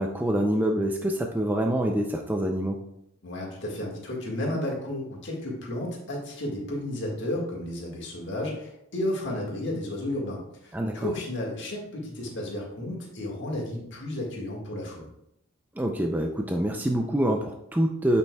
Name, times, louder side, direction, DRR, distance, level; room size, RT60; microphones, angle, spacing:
voice 1, 0.0-2.8 10.7-11.1 15.8-18.2, right 1 dB, 10° right, 2 dB, 0.4 m, -26 dB
voice 2, 3.2-15.1, left 1 dB, 55° left, -2 dB, 1.8 m, -33 dB
8.8 x 5.4 x 2.3 m, 0.78 s
head